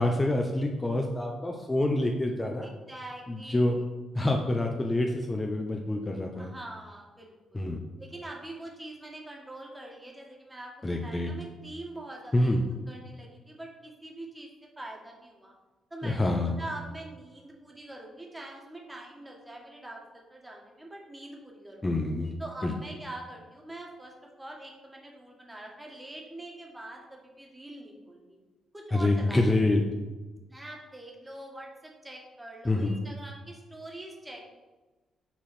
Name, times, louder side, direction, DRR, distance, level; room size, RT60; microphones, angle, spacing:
voice 1, 0.0-2.7 3.3-3.8 4.1-6.5 7.5-7.8 10.8-11.3 12.3-12.6 16.0-16.5 21.8-22.3 22.6-22.7 28.9-29.8 32.6-33.0, left 2 dB, 20° left, 2 dB, 0.7 m, -26 dB
voice 2, 2.6-3.8 6.3-7.7 8.0-15.5 15.9-21.8 22.4-28.4 28.7-29.6 30.5-34.5, right 1 dB, 15° right, 0 dB, 1.7 m, -44 dB
6.0 x 4.0 x 4.3 m, 1.2 s
hypercardioid pair, 45°, 0 cm